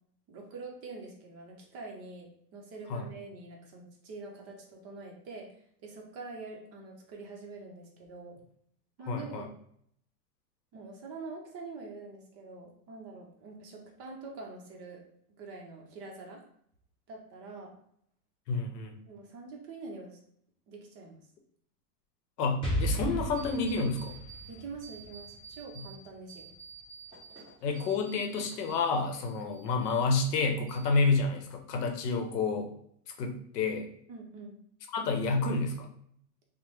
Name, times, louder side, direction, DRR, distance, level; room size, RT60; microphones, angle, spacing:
voice 1, 0.3-5.5 5.8-8.4 9.0-9.5 10.7-15.0 15.4-16.4 17.1-17.7 19.1-20.2 20.7-21.2 24.5-26.5 34.1-34.5, right 3 dB, 30° right, 0 dB, 0.6 m, -45 dB
voice 2, 9.1-9.5 18.5-18.9 22.4-24.2 25.8-25.9 27.6-32.7 33.2-33.9 34.9-35.9, left 4 dB, 80° left, 4 dB, 0.8 m, -29 dB
Explosion, 22.6-26.4, right 1 dB, 10° left, 0.5 m, -35 dB
sound 1, 23.4-24.5 24.8-26.0 26.3-28.9 29.2-30.4 30.7-31.3, right 6 dB, 10° right, 1.1 m, -50 dB
2.9 x 2.0 x 3.1 m, 0.67 s
supercardioid pair, 130°, 47 cm